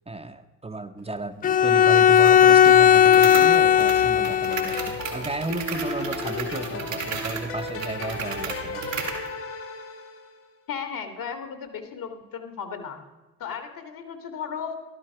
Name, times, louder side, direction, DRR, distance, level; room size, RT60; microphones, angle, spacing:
voice 1, 0.1-8.9, right 2 dB, 15° right, 7 dB, 0.9 m, -33 dB
Bowed string instrument, 1.4-4.9, left 9 dB, 25° left, 0.4 m, -16 dB
sound 1, 1.5-10.4, left 3 dB, 75° left, 2.5 m, -35 dB
sound 2, 2.2-9.3, right 6 dB, 85° right, 2.0 m, -35 dB
voice 2, 10.7-13.0 13.4-14.8, left 7 dB, 55° left, 7 dB, 2.2 m, -35 dB
13.5 x 13.0 x 4.8 m, 1.1 s
figure-of-eight pair, 45°, 39 cm